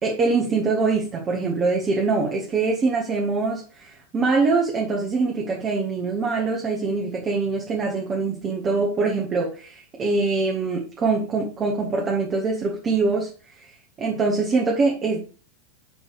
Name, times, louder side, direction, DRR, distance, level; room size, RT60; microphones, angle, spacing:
voice 1, 0.0-13.3 13.6-13.7 14.0-15.2, right 4 dB, 25° right, -1 dB, 1.7 m, -23 dB
9.3 x 4.0 x 4.9 m, 0.38 s
figure-of-eight pair, 90°, 0 cm